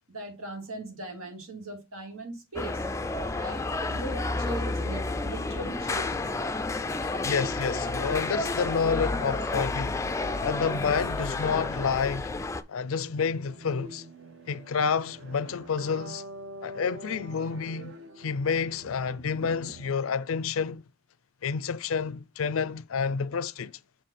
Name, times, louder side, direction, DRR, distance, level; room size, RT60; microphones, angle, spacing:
voice 1, 0.1-2.9 3.3-3.6 3.9-6.3, right 1 dB, 85° right, 2.5 m, -39 dB
sound 1, 2.6-12.6, left 2 dB, 15° left, 0.3 m, -30 dB
voice 2, 7.0-10.0 10.4-12.3 12.7-14.0 14.5-16.2 16.6-20.8 21.4-23.7, left 6 dB, 80° left, 0.5 m, -29 dB
sound 2, 12.8-19.9, right 1 dB, 65° right, 0.9 m, -46 dB
7.1 x 3.2 x 4.2 m
head